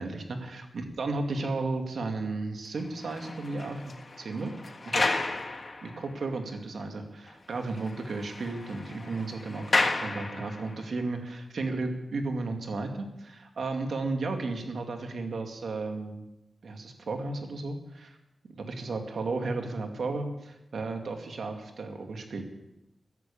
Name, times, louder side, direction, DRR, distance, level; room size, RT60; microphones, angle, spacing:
voice 1, 0.0-4.6 4.9-5.1 5.8-16.2 16.6-18.2 18.5-22.4, right 3 dB, 75° right, 5 dB, 2.2 m, -34 dB
sound 1, 2.8-6.3 6.8-6.9 7.3-7.4 7.6-10.9, left 3 dB, 40° left, 1.5 m, -32 dB
14.5 x 11.0 x 8.6 m, 0.93 s
wide cardioid pair, 135°, 0 cm